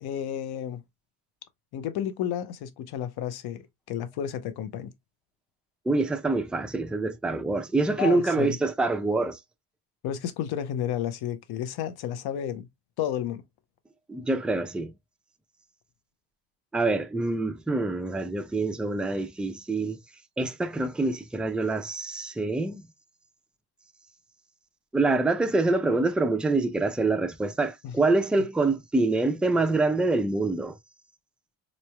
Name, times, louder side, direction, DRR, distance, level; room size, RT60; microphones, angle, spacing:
voice 1, 0.0-0.8 1.7-3.6 3.9-4.9 8.0-8.6 10.0-12.7 13.0-13.4 27.8-27.9, left 10 dB, 75° left, 0.8 m, -31 dB
voice 2, 5.9-9.4 14.1-14.9 16.7-20.0 20.4-22.8 24.9-30.8, right 3 dB, ahead, 0.4 m, -26 dB
4.0 x 3.1 x 2.2 m
cardioid pair, 105°, 39 cm